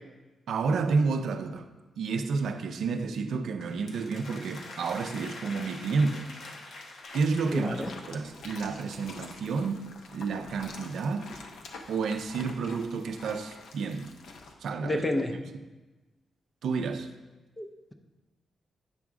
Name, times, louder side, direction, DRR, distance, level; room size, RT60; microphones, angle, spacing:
voice 1, 0.5-1.6 2.0-6.3 7.1-11.3 11.9-14.1 14.6-15.0 15.3-15.4 16.6-17.1, right 4 dB, 70° right, 0.5 m, -30 dB
sound 1, 3.6-8.8, left 2 dB, 55° left, 0.8 m, -46 dB
sound 2, 7.0-14.5, left 3 dB, 80° left, 0.8 m, -47 dB
voice 2, 7.5-7.9 14.8-15.3 17.6-17.9, left 1 dB, 15° left, 0.5 m, -30 dB
8.3 x 3.6 x 6.0 m
wide cardioid pair, 180°, 0 cm